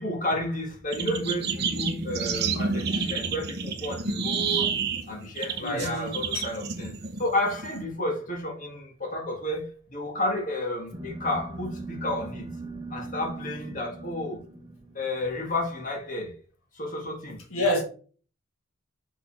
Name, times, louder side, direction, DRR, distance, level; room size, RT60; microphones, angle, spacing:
voice 1, 0.0-4.8 5.1-6.9 7.2-12.5 12.9-14.4 14.9-16.3 16.7-17.4, left 1 dB, 35° left, 1.7 m, -31 dB
sound 1, 0.9-7.8, right 5 dB, 50° right, 0.9 m, -29 dB
voice 2, 5.6-6.4 17.5-17.8, left 1 dB, 85° left, 1.6 m, -28 dB
sound 2, 10.9-15.5, right 2 dB, 25° right, 1.3 m, -40 dB
6.2 x 5.0 x 3.3 m
head